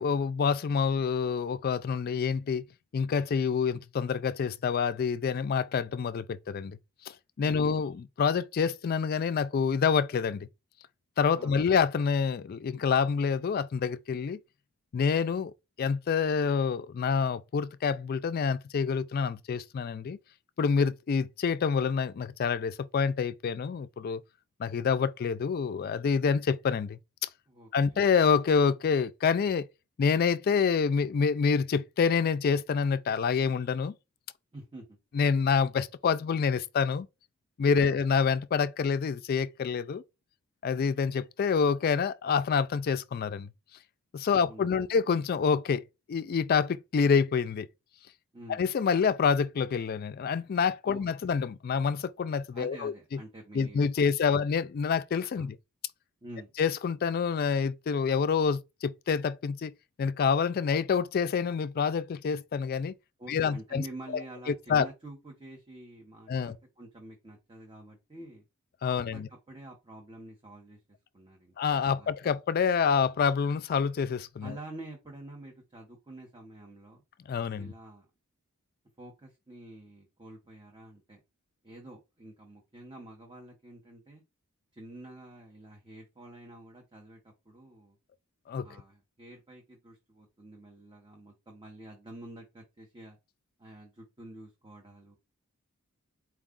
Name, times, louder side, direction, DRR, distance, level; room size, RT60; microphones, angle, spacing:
voice 1, 0.0-2.6 2.9-6.8 7.4-10.5 11.2-14.4 14.9-15.5 15.8-20.2 20.6-24.2 24.6-27.3 27.7-29.7 30.0-33.9 35.1-37.1 37.6-40.0 40.6-43.5 44.1-45.8 46.1-47.7 48.5-52.9 53.5-55.6 56.6-59.7 60.0-62.9 63.3-63.8 64.1-64.2 64.5-64.9 66.3-66.6 68.8-69.3 71.6-74.6 77.3-77.7 88.5-88.7, left 6 dB, 45° left, 0.3 m, -27 dB
voice 2, 11.4-11.7 27.5-28.0 34.5-35.0 37.7-38.0 44.3-44.8 48.3-48.6 50.8-51.0 52.5-54.4 55.4-55.5 56.2-56.5 63.2-68.4 68.9-71.5 71.9-72.3 74.4-77.0 77.6-78.1 79.0-81.2 81.6-84.2 84.7-88.0 88.6-93.2 93.6-95.2, right 1 dB, 20° right, 0.9 m, -48 dB
4.5 x 2.3 x 3.6 m
head